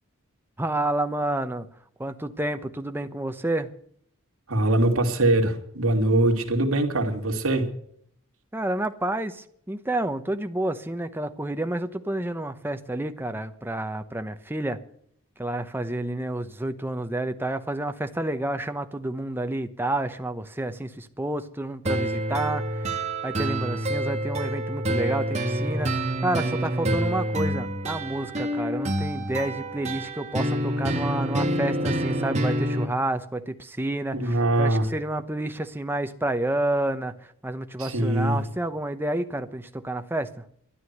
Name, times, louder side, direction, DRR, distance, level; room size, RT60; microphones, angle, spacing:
voice 1, 0.6-1.7 2.0-3.7 8.5-14.8 15.4-40.4, right 1 dB, 10° right, 0.9 m, -30 dB
voice 2, 4.5-7.7 26.8-27.0 34.1-34.9 37.8-38.4, right 1 dB, 80° right, 2.5 m, -22 dB
sound 1, 21.9-32.9, right 1 dB, 30° right, 1.8 m, -27 dB
13.0 x 11.0 x 8.0 m
head